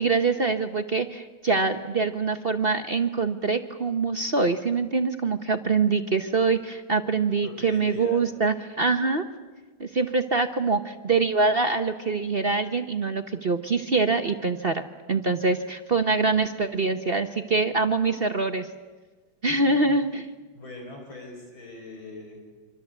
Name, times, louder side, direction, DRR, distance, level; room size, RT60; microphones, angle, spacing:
voice 1, 0.0-9.2 9.8-14.8 15.1-18.7 19.4-20.3, right 4 dB, 40° right, 8 dB, 0.9 m, -24 dB
voice 2, 7.4-8.2 19.5-19.6 20.5-22.5, left 2 dB, 85° left, 1 dB, 6.2 m, -42 dB
26.0 x 25.0 x 8.1 m, 1.4 s
omnidirectional pair, 2.2 m